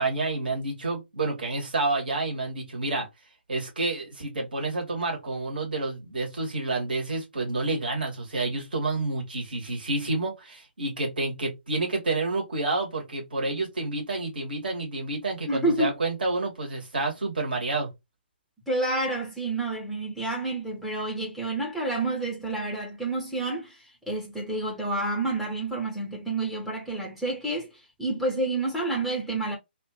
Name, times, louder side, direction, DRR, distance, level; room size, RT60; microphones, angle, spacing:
voice 1, 0.0-3.1 3.5-17.9, right 2 dB, 60° right, 1.7 m, -29 dB
voice 2, 15.5-15.9 18.7-27.7 28.0-29.6, right 2 dB, ahead, 0.8 m, -29 dB
3.2 x 2.5 x 2.9 m
figure-of-eight pair, 130°, 6 cm